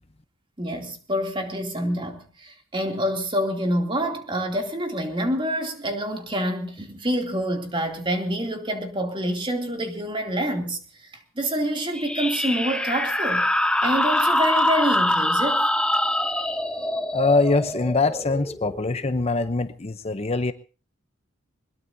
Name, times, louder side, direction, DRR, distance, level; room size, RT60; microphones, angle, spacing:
voice 1, 0.6-10.8 11.4-13.5 13.8-15.7, equal, 25° right, 2.7 m, -27 dB
sound 1, 11.9-19.2, left 1 dB, 5° left, 1.0 m, -24 dB
voice 2, 17.1-20.5, left 3 dB, 30° left, 0.7 m, -23 dB
22.0 x 21.0 x 2.7 m
head